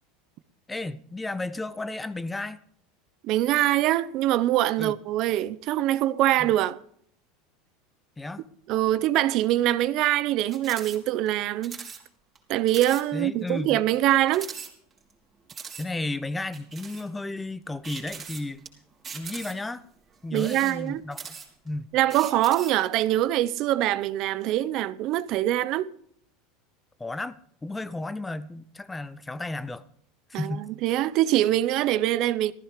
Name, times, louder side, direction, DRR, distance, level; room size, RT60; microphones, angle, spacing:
voice 1, 0.7-2.6 4.8-4.9 6.4-6.6 8.2-8.4 13.1-13.8 15.7-18.6 19.1-19.8 20.2-21.2 21.6-21.9 27.0-27.4 27.6-29.8 30.3-30.6, left 2 dB, 10° left, 0.7 m, -33 dB
voice 2, 3.2-6.8 8.7-11.8 12.5-14.5 20.3-21.0 21.9-25.9 30.3-32.5, right 14 dB, 50° right, 0.8 m, -24 dB
sound 1, 10.5-11.0 11.3-11.4 11.6-12.0 12.4-12.5 12.7-13.0 13.5-13.6 14.3-15.1 15.5-15.9 16.5-17.1 17.8-18.7 19.0-19.7 20.3-21.7 22.1-22.8, right 6 dB, 25° right, 3.5 m, -40 dB
15.0 x 14.0 x 5.0 m
supercardioid pair, 135°, 0 cm